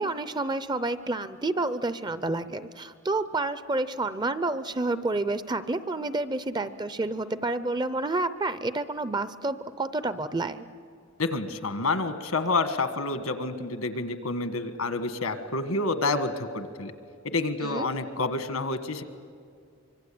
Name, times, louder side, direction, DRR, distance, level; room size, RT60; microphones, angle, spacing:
voice 1, 0.0-10.7 17.6-17.9, right 2 dB, 20° right, 13 dB, 0.6 m, -29 dB
voice 2, 11.2-16.9 17.2-19.0, left 3 dB, 80° left, 9 dB, 1.6 m, -28 dB
25.0 x 23.5 x 8.6 m, 2.3 s
head